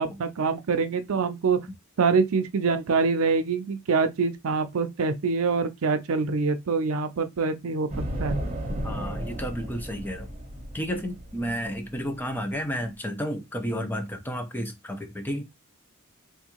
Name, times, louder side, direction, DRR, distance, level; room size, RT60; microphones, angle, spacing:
voice 1, 0.0-1.6 2.0-7.9 8.2-8.4, right 4 dB, 70° right, 0.5 m, -25 dB
sound 1, 7.9-12.8, equal, 30° right, 1.0 m, -34 dB
voice 2, 8.8-10.3 10.7-15.4, equal, 10° left, 0.6 m, -31 dB
3.5 x 2.6 x 2.9 m
head